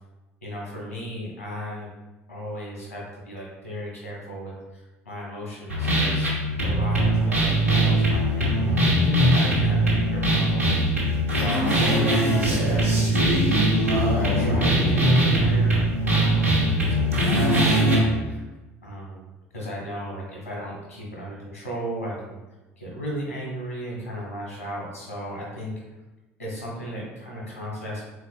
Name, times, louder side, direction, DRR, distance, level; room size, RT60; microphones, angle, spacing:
voice 1, 0.4-1.9 2.3-6.3 6.6-10.7 11.3-13.5 14.1-18.5 18.8-19.3 19.5-22.4 22.8-25.7 26.4-28.0, equal, 85° left, -3 dB, 1.4 m, -35 dB
sound 1, 5.7-18.0, right 1 dB, 85° right, 1.0 m, -21 dB
5.3 x 3.9 x 2.3 m, 1.1 s
figure-of-eight pair, 60°, 8 cm